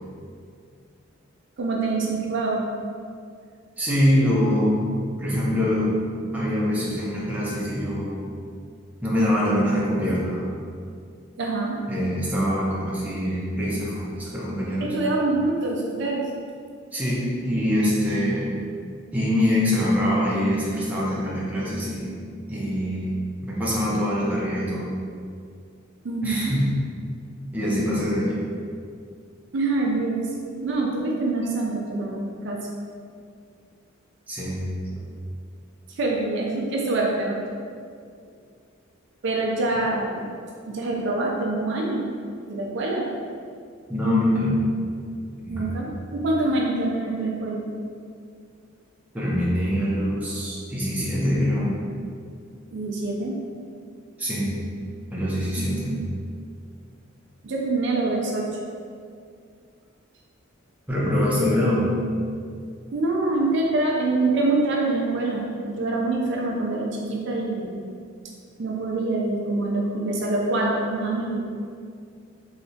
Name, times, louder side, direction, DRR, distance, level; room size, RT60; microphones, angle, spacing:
voice 1, 1.6-2.6 11.4-11.8 14.8-16.3 26.0-26.5 29.5-30.3 30.6-32.7 36.0-37.4 39.2-40.2 40.7-42.1 42.5-43.1 45.5-47.6 52.7-53.4 55.6-56.0 57.4-58.5 62.9-67.7 68.6-71.4, right 2 dB, 60° right, -1 dB, 0.4 m, -25 dB
voice 2, 3.8-4.8 5.2-5.9 6.3-8.3 9.0-10.5 11.9-14.9 16.9-18.6 19.1-22.2 22.5-23.1 23.4-24.9 26.2-26.8 27.5-28.4 34.3-35.0 43.9-44.5 45.5-45.7 49.1-51.8 54.2-54.5 55.1-56.0 60.9-61.9, equal, 10° right, -7 dB, 0.6 m, -24 dB
3.2 x 2.7 x 2.7 m, 2.2 s
head